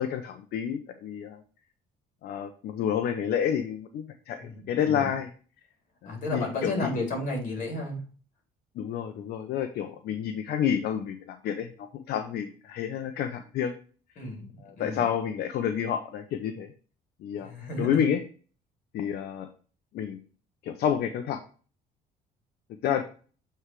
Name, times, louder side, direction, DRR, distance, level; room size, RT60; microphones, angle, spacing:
voice 1, 0.0-1.4 2.2-5.3 6.0-6.9 8.7-13.7 14.6-16.7 17.2-17.5 17.8-18.2 18.9-19.5 19.9-20.2 20.6-21.4 22.8-23.0, left 9 dB, 70° left, 7 dB, 0.8 m, -29 dB
voice 2, 4.4-5.1 6.0-8.0 14.2-15.0 17.4-18.1, left 1 dB, 50° left, 1 dB, 3.7 m, -33 dB
7.8 x 3.4 x 4.7 m, 0.40 s
cardioid pair, 110°, 17 cm